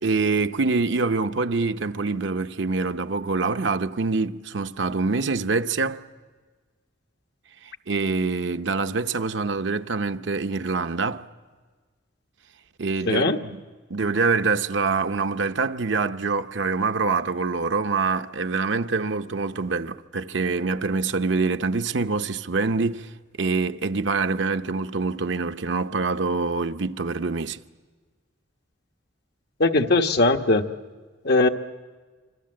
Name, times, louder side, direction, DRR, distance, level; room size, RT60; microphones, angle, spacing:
voice 1, 0.0-6.0 7.9-11.3 12.8-13.6 13.9-23.1 23.4-27.6, right 4 dB, 65° right, 0.8 m, -25 dB
voice 2, 13.0-13.4 29.6-30.6 31.2-31.5, left 2 dB, 60° left, 1.2 m, -19 dB
26.5 x 25.5 x 7.7 m
head